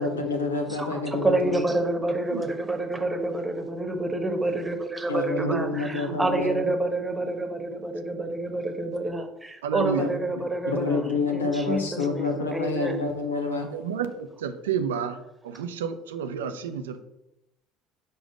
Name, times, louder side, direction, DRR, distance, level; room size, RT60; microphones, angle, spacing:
voice 1, 0.0-1.6 5.1-6.7 10.0-10.4 10.7-13.7, left 4 dB, 90° left, 4 dB, 0.9 m, -28 dB
voice 2, 0.7-13.0, right 2 dB, 15° right, 6 dB, 1.2 m, -28 dB
voice 3, 5.4-6.5 9.6-10.1 13.6-17.0, right 7 dB, 80° right, 9 dB, 0.5 m, -31 dB
5.3 x 4.7 x 5.0 m, 0.90 s
hypercardioid pair, 65°, 0 cm